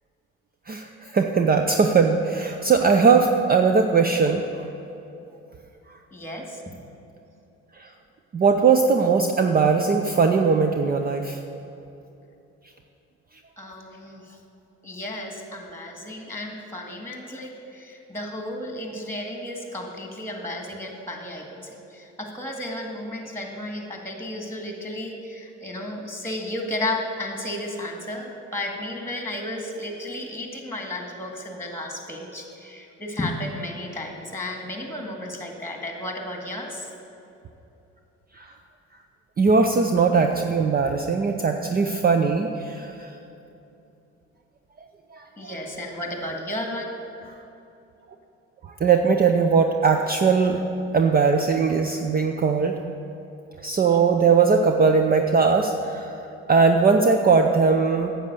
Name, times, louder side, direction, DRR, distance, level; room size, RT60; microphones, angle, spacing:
voice 1, 0.7-4.7 7.7-7.9 8.3-11.4 38.3-38.5 39.4-43.1 45.1-45.2 48.6-50.6 50.9-52.8 53.6-56.1 56.5-58.1, right 5 dB, 30° right, 5 dB, 0.7 m, -20 dB
voice 2, 6.1-6.6 13.6-14.4 14.8-36.9 45.4-47.0, left 1 dB, 10° left, 2 dB, 2.1 m, -33 dB
9.4 x 7.6 x 6.9 m, 2.9 s
supercardioid pair, 75°, 31 cm